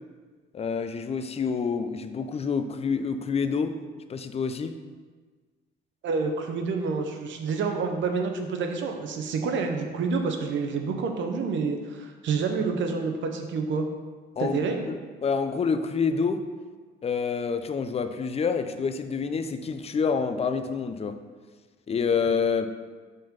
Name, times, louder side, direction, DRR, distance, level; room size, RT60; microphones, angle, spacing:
voice 1, 0.5-3.8 4.1-4.7 14.4-14.6 14.9-16.4 17.0-21.2 21.9-22.7, left 5 dB, 30° left, 9 dB, 0.5 m, -27 dB
voice 2, 6.0-13.8 14.4-14.8, right 4 dB, 70° right, 4 dB, 0.8 m, -28 dB
5.4 x 3.8 x 5.1 m, 1.4 s
cardioid pair, 90°, 20 cm